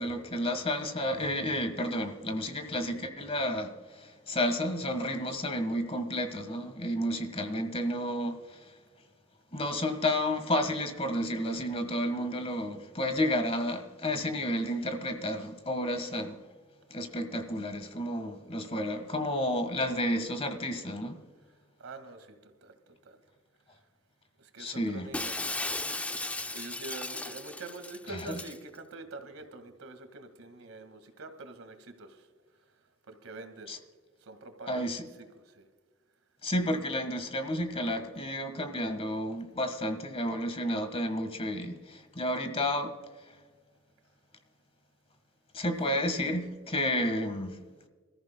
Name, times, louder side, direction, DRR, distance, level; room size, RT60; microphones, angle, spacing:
voice 1, 0.0-8.7 9.5-16.4 16.9-21.2 24.6-25.1 28.1-28.4 33.7-33.8 34.7-35.1 36.4-42.9 45.5-47.6, left 1 dB, 30° left, 1.5 m, -31 dB
voice 2, 21.8-23.2 24.4-26.0 26.5-32.3 33.1-33.7 34.2-35.0 35.5-35.6 45.9-46.0, right 3 dB, 85° right, 1.9 m, -46 dB
Shatter, 25.1-28.6, left 2 dB, 5° left, 0.4 m, -36 dB
26.5 x 14.0 x 2.2 m
head